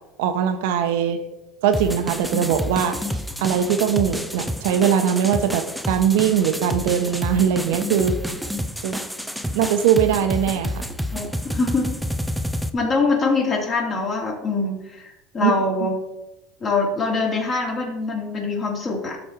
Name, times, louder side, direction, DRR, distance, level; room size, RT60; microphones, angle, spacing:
voice 1, 0.2-1.2 1.6-3.0 3.4-8.2 8.8-9.0 9.5-10.7 15.4-15.9, right 8 dB, 80° right, 8 dB, 1.1 m, -21 dB
sound 1, 1.7-12.7, equal, ahead, 0.6 m, -29 dB
voice 2, 11.5-11.9 12.7-16.0 16.6-19.2, left 3 dB, 30° left, -1 dB, 2.8 m, -23 dB
12.5 x 4.3 x 4.6 m, 0.97 s
supercardioid pair, 120°, 0 cm